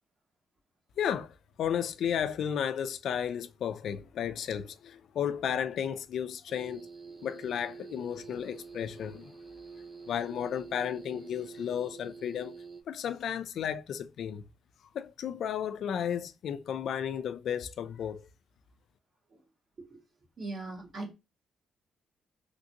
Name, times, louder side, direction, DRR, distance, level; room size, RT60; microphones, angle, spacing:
voice 1, 1.0-6.9 7.2-9.3 10.1-12.6 12.9-14.4 14.9-18.3, left 8 dB, 70° left, 0.3 m, -33 dB
sound 1, 6.5-12.8, right 5 dB, 25° right, 0.5 m, -47 dB
voice 2, 20.4-21.1, right 2 dB, 50° right, 1.6 m, -40 dB
3.2 x 2.6 x 2.7 m
cardioid pair, 80°, 0 cm